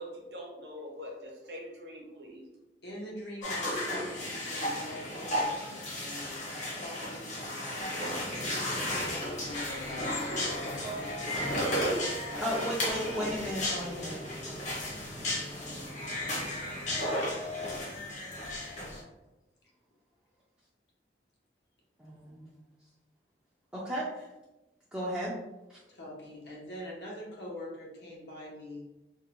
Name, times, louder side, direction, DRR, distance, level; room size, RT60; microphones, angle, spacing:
voice 1, 0.0-2.4, equal, 70° right, -1 dB, 0.7 m, -43 dB
voice 2, 2.8-8.6 9.1-10.1 10.7-14.1 25.9-28.8, left 1 dB, 75° left, -4 dB, 0.7 m, -44 dB
sound 1, 3.4-19.0, left 1 dB, 40° left, 0.7 m, -34 dB
voice 3, 12.4-14.2 14.6-17.0 22.0-22.5 23.7-24.3 24.9-25.3 25.7-25.8, equal, 5° right, -7 dB, 0.3 m, -37 dB
2.5 x 2.0 x 2.8 m, 1.0 s
head